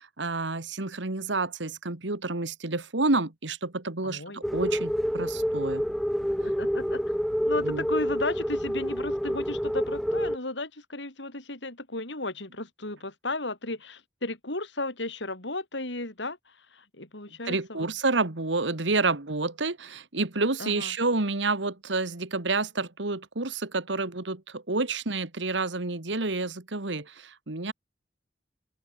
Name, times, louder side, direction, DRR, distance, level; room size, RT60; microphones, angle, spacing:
voice 1, 0.0-5.8 7.6-7.9 17.4-27.7, right 3 dB, 85° right, 2.0 m, -29 dB
voice 2, 4.0-4.4 6.3-7.0 7.5-17.9 20.6-20.9, left 2 dB, 80° left, 5.8 m, -35 dB
sound 1, 4.4-10.4, equal, ahead, 0.4 m, -28 dB
open air
head